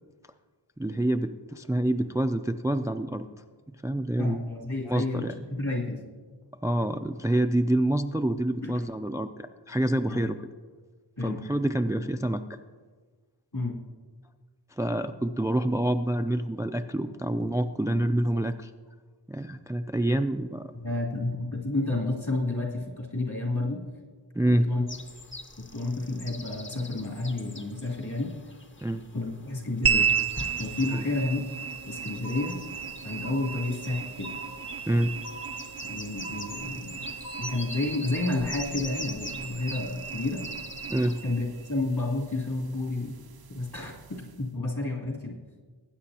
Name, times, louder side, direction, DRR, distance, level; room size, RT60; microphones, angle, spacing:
voice 1, 0.8-3.3 3.8-4.5 4.9-5.3 6.6-10.4 11.2-12.4 14.8-18.7 19.3-20.7 24.3-24.7 28.8-29.0 30.9-31.1 34.9-35.1 40.9-41.2, right 1 dB, 10° right, 8 dB, 0.3 m, -27 dB
voice 2, 4.2-6.0 8.6-8.7 10.1-10.2 11.2-11.4 13.5-13.8 20.7-23.8 24.7-24.8 25.6-28.3 29.1-30.1 30.6-31.4 31.9-32.6 33.0-34.3 35.8-37.1 37.4-40.4 41.2-43.1 43.5-45.4, left 2 dB, 60° left, -2 dB, 3.0 m, -30 dB
sound 1, 24.9-41.2, left 2 dB, 30° left, 0.8 m, -44 dB
sound 2, 29.8-44.5, right 7 dB, 60° right, 0.6 m, -34 dB
sound 3, 32.2-32.9 33.2-33.9 34.2-34.9 35.2-35.9 36.2-36.9 37.2-37.8, right 1 dB, 85° left, 2.3 m, -43 dB
19.5 x 9.0 x 2.9 m, 1.5 s
wide cardioid pair, 70°, 42 cm